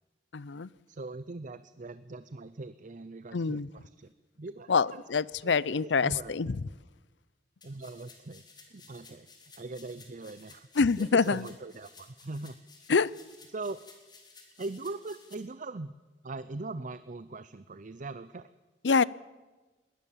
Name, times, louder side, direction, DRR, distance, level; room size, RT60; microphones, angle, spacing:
voice 1, 0.3-0.7 3.3-3.7 4.7-6.6 10.8-11.4 12.9-13.1 18.8-19.0, left 5 dB, 85° left, 21 dB, 0.6 m, -26 dB
voice 2, 0.9-4.1 4.4-5.0 5.4-6.5 7.6-9.3 9.6-10.7 11.0-12.6 13.5-13.8 14.6-15.9 16.2-18.5, right 3 dB, 45° right, 14 dB, 0.6 m, -41 dB
sound 1, 7.6-15.3, left 4 dB, 25° left, 3.5 m, -56 dB
21.0 x 19.0 x 7.3 m, 1.2 s
head